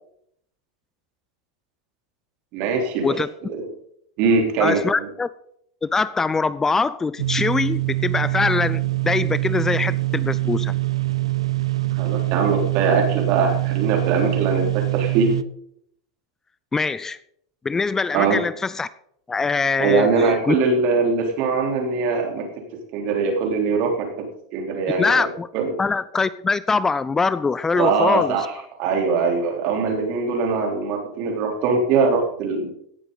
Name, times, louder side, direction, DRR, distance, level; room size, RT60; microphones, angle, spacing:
voice 1, 2.5-3.1 3.5-3.7 4.2-5.1 11.9-15.3 18.1-18.4 19.8-22.4 22.9-24.3 24.5-25.3 25.5-25.7 27.7-28.5 28.8-32.7, right 4 dB, 55° right, 2 dB, 3.7 m, -22 dB
voice 2, 4.6-5.3 5.8-10.7 16.7-17.2 17.6-18.9 19.3-20.5 25.0-25.5 25.8-28.3, left 4 dB, 15° left, 17 dB, 0.4 m, -23 dB
sound 1, 7.2-15.4, right 18 dB, 85° right, 0.5 m, -24 dB
17.0 x 7.8 x 4.1 m, 0.70 s
hypercardioid pair, 100°, 3 cm